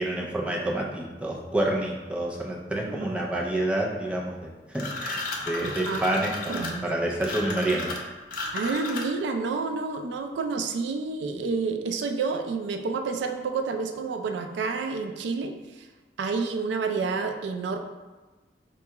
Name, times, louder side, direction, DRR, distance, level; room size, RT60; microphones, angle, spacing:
voice 1, 0.0-8.0, right 1 dB, 5° right, -2 dB, 0.4 m, -28 dB
sound 1, 4.7-9.3, left 2 dB, 50° left, 0.5 m, -34 dB
voice 2, 5.6-6.0 6.5-6.8 8.5-15.9 16.2-17.8, right 4 dB, 85° right, 5 dB, 0.3 m, -29 dB
4.4 x 2.2 x 2.9 m, 1.2 s
head